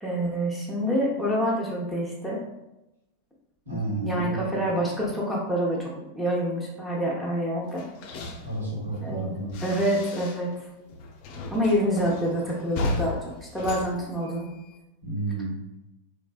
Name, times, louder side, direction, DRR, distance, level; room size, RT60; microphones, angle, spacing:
voice 1, 0.0-2.4 4.0-7.8 9.0-10.5 11.5-14.5, equal, ahead, -5 dB, 0.8 m, -27 dB
voice 2, 3.6-4.4 8.4-9.6 15.0-15.6, right 2 dB, 80° right, -10 dB, 1.4 m, -31 dB
sound 1, 7.7-10.6 10.9-14.8, left 2 dB, 45° left, 0.4 m, -35 dB
3.2 x 2.6 x 2.3 m, 0.94 s
figure-of-eight pair, 90°, 0 cm